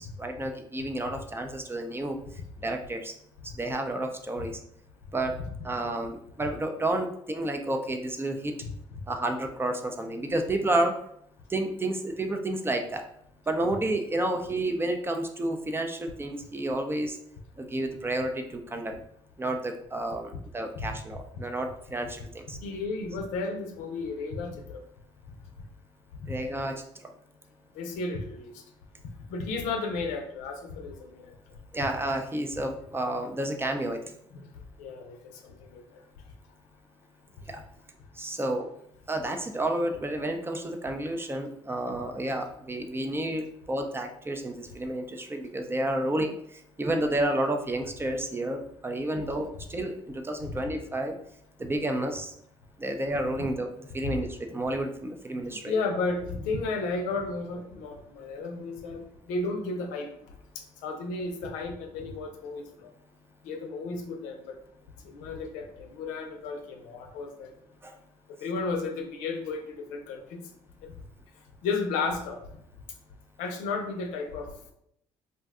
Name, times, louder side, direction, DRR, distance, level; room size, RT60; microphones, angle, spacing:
voice 1, 0.0-3.1 3.6-4.6 5.1-8.5 9.1-10.9 11.5-13.0 13.5-17.2 17.6-19.0 19.4-22.6 26.3-26.8 31.7-34.1 37.5-37.6 38.2-38.7 39.1-51.1 51.6-52.3 52.8-53.7 53.9-55.8 67.8-67.9, right 1 dB, 20° right, 5 dB, 0.5 m, -30 dB
voice 2, 22.6-24.8 26.2-26.3 27.8-28.6 29.3-31.3 34.3-34.5 34.8-35.8 50.4-50.5 55.5-59.0 59.3-60.1 60.8-62.9 63.4-64.6 65.0-67.5 68.4-70.4 70.8-70.9 71.6-72.4 73.4-74.5, left 3 dB, 85° left, 4 dB, 0.5 m, -33 dB
2.6 x 2.2 x 3.5 m, 0.71 s
supercardioid pair, 75°, 13 cm